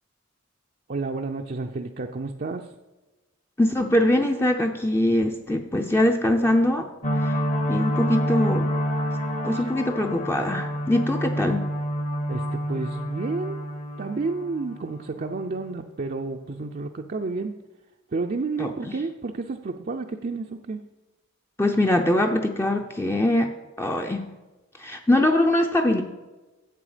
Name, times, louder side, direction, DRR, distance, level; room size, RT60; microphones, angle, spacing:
voice 1, 0.9-2.8 9.5-9.7 12.3-13.6 14.0-17.6 18.1-20.8, right 3 dB, 45° right, 2 dB, 0.5 m, -31 dB
voice 2, 3.6-6.9 7.2-7.4 7.7-8.7 9.4-11.7 18.6-18.7 21.6-23.5 23.8-24.2 24.8-26.0, left 1 dB, 10° left, 4 dB, 0.5 m, -22 dB
sound 1, 7.0-15.4, equal, 35° left, 0.9 m, -28 dB
11.0 x 7.9 x 5.0 m, 1.2 s
head